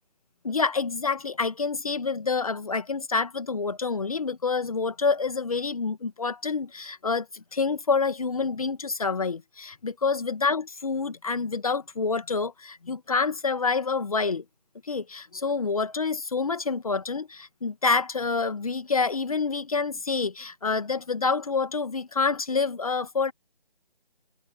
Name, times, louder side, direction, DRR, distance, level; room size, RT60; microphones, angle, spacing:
voice 1, 0.4-14.4 14.8-23.3, left 4 dB, 40° left, 1.7 m, -27 dB
figure-of-eight pair, 155°, 29 cm